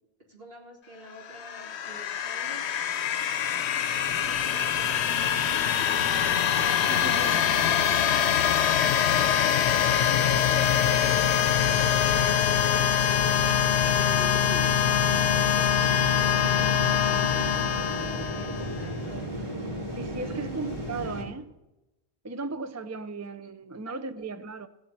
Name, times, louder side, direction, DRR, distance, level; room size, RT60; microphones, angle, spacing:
voice 1, 0.3-2.8 4.1-8.3 8.8-12.6 13.6-16.0 17.7-19.6 20.2-20.8 23.4-23.5 23.9-24.3, equal, 65° right, 3.4 m, -46 dB
sound 1, 1.3-18.9, left 9 dB, 85° left, 0.9 m, -24 dB
sound 2, 3.9-21.2, equal, 45° right, 3.4 m, -38 dB
voice 2, 6.9-7.7 19.9-21.5 22.2-24.7, right 3 dB, 20° right, 0.4 m, -37 dB
16.5 x 7.3 x 8.6 m
omnidirectional pair, 1.1 m